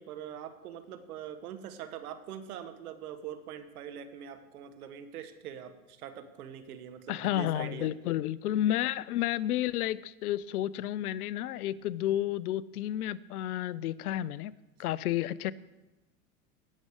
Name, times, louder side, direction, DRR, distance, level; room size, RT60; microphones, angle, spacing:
voice 1, 0.0-7.9, right 9 dB, 80° right, 10 dB, 1.3 m, -43 dB
voice 2, 7.1-14.5 14.8-15.5, left 13 dB, 80° left, 20 dB, 0.6 m, -31 dB
17.5 x 6.5 x 4.8 m, 1.1 s
hypercardioid pair, 110°, 44 cm